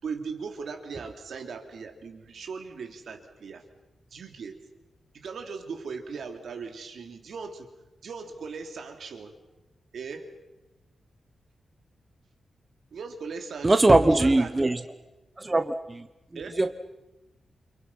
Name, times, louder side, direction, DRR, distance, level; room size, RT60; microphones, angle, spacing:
voice 1, 0.0-3.6 4.1-4.6 5.1-7.7 8.0-9.4 9.9-10.3 12.9-14.5 16.3-16.6, right 5 dB, 75° right, 4 dB, 3.4 m, -38 dB
voice 2, 13.6-14.8 15.4-16.1 16.6-16.8, right 2 dB, 20° right, 9 dB, 1.1 m, -21 dB
29.0 x 27.0 x 5.7 m, 1.0 s
wide cardioid pair, 125°, 0 cm